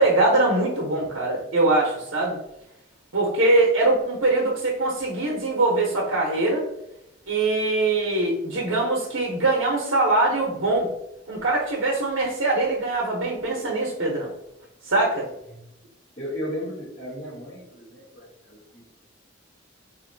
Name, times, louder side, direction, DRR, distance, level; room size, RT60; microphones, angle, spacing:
voice 1, 0.0-2.4 3.1-6.7 7.3-10.9 11.3-14.3 14.9-15.3, right 2 dB, 85° right, -2 dB, 0.7 m, -22 dB
voice 2, 16.2-18.8, equal, 30° left, -8 dB, 1.2 m, -35 dB
4.3 x 2.6 x 2.6 m, 0.86 s
head